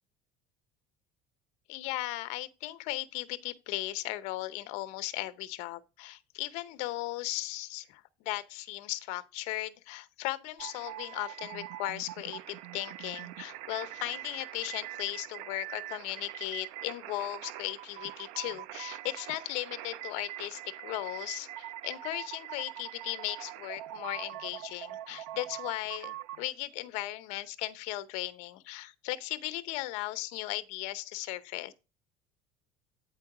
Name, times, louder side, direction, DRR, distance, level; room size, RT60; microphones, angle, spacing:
voice 1, 1.7-31.7, left 17 dB, 60° left, 0.7 m, -37 dB
sound 1, 10.6-26.5, right 14 dB, 75° right, 0.5 m, -43 dB
8.8 x 4.6 x 4.8 m
cardioid pair, 180°, 13 cm